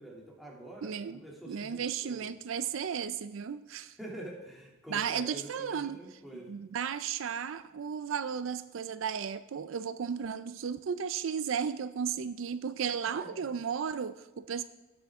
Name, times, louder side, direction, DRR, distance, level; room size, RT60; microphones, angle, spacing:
voice 1, 0.0-2.3 4.0-6.5 13.1-13.3, right 1 dB, ahead, 2.5 m, -46 dB
voice 2, 0.8-4.0 4.9-14.6, right 7 dB, 70° right, 0.4 m, -34 dB
17.0 x 7.8 x 3.6 m
head